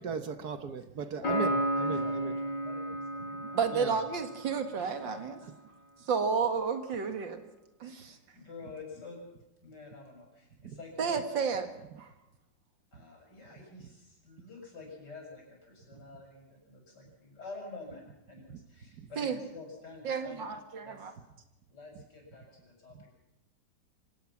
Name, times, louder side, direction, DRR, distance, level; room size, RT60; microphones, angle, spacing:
voice 1, 0.0-2.4 3.7-4.0 10.6-10.8 13.8-13.9 18.5-18.6 19.0-19.1 21.9-22.0 22.9-23.0, right 6 dB, 60° right, 10 dB, 1.6 m, -38 dB
Piano, 1.2-4.8, right 1 dB, 85° left, 6.7 m, -33 dB
voice 2, 1.2-3.6 4.8-5.5 7.8-9.2 9.6-11.3 12.9-20.4 20.8-21.2 21.7-23.1, left 3 dB, 65° left, 1 dB, 7.6 m, -48 dB
voice 3, 3.5-5.4 6.1-7.4 7.8-8.2 11.0-11.7 12.0-12.1 19.2-19.4 20.0-21.1, right 6 dB, 85° right, 7 dB, 2.6 m, -31 dB
25.0 x 17.5 x 5.9 m, 0.96 s
omnidirectional pair, 2.0 m